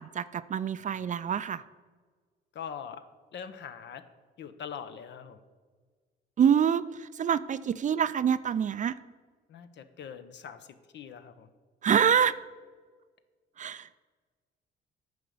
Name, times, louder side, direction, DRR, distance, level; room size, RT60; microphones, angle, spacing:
voice 1, 0.0-1.6 6.4-9.0 11.8-12.4 13.6-13.9, right 8 dB, 40° right, 15 dB, 0.4 m, -26 dB
voice 2, 0.8-1.4 2.5-3.0 3.3-4.0 4.4-5.4 9.5-11.5, left 7 dB, 65° left, 11 dB, 0.8 m, -43 dB
9.5 x 5.1 x 7.0 m, 1.5 s
cardioid pair, 90°, 20 cm